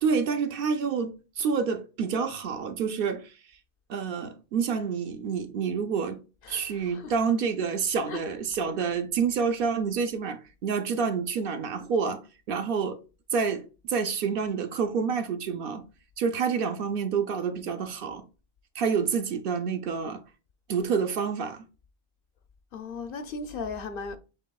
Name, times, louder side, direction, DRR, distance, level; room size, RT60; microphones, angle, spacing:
voice 1, 0.0-3.3 3.9-6.2 6.5-13.0 13.3-15.9 16.2-18.3 18.8-20.2 20.7-21.6, right 6 dB, 65° right, 0.7 m, -28 dB
voice 2, 6.4-7.2 8.1-8.3 22.7-24.2, left 4 dB, 65° left, 0.7 m, -37 dB
7.3 x 2.9 x 2.3 m
omnidirectional pair, 1.1 m